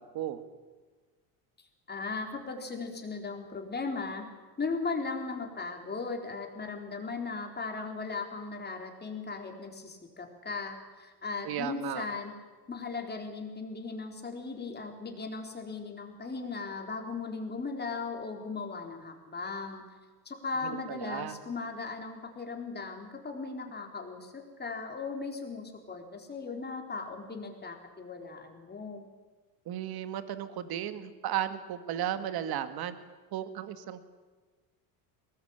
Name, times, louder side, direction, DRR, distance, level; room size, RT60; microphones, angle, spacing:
voice 1, 1.6-4.3 4.6-12.4 12.7-19.8 20.2-29.0, left 4 dB, 20° left, 3 dB, 4.2 m, -37 dB
voice 2, 11.4-12.0 20.6-21.4 29.7-33.0 33.3-34.1, right 11 dB, 55° right, 11 dB, 2.0 m, -35 dB
22.5 x 19.0 x 8.9 m, 1.3 s
supercardioid pair, 115°, 45 cm